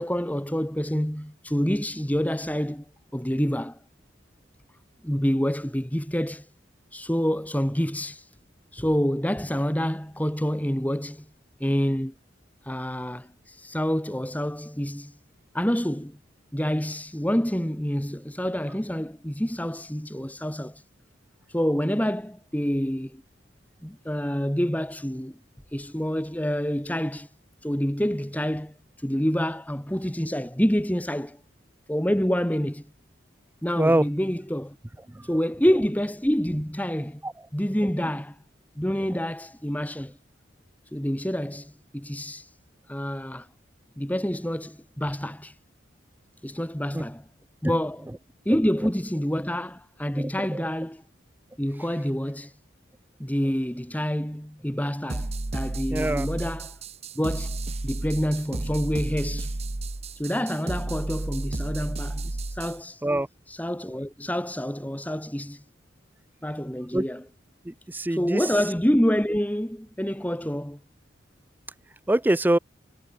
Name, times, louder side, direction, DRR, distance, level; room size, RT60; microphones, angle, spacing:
voice 1, 0.0-2.9 3.1-3.8 5.0-6.5 6.9-8.3 8.7-11.3 11.6-12.1 12.6-15.1 15.5-16.2 16.5-20.8 21.5-23.2 23.8-25.4 25.7-27.3 27.6-31.4 31.9-32.9 33.6-34.8 35.2-37.2 37.5-38.4 38.8-40.2 40.9-42.5 42.9-43.5 44.0-45.5 46.4-47.3 47.6-48.1 48.5-51.0 51.6-52.5 53.2-56.8 57.2-57.6 57.8-59.6 60.2-63.0 63.5-65.6 66.4-67.2 68.1-70.8, equal, 10° left, 1.8 m, -27 dB
voice 2, 50.2-50.6 55.9-56.3 63.0-63.3 66.9-67.0 67.7-68.4 72.1-72.6, right 1 dB, 10° right, 0.4 m, -24 dB
sound 1, 55.1-62.8, right 2 dB, 35° right, 0.9 m, -32 dB
head